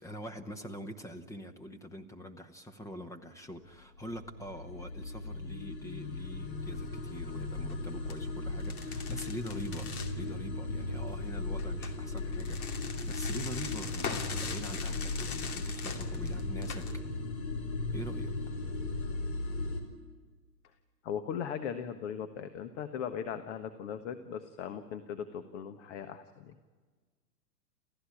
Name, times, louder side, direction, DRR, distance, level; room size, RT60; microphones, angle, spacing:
voice 1, 0.0-9.9 10.2-16.9 17.9-18.3, equal, 5° left, 6 dB, 1.0 m, -44 dB
sound 1, 3.8-19.8, left 2 dB, 85° left, 5.0 m, -37 dB
sound 2, 7.6-7.7 8.1-8.2 8.6-10.1 11.6-16.9, left 6 dB, 60° left, 2.7 m, -42 dB
voice 2, 21.0-26.5, left 8 dB, 45° left, 9 dB, 1.5 m, -38 dB
28.5 x 15.5 x 9.9 m, 1.4 s
hypercardioid pair, 125°, 50 cm